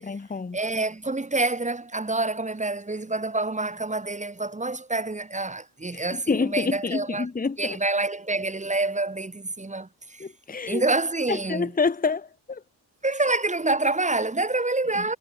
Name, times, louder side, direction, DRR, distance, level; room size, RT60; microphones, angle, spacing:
voice 1, 0.0-0.6 5.9-7.8 10.2-10.8 11.3-12.6, left 4 dB, 20° left, 1.1 m, -28 dB
voice 2, 0.5-7.3 7.6-10.3 10.7-11.7 13.0-15.2, right 2 dB, 15° right, 1.7 m, -27 dB
cardioid pair, 65°, 44 cm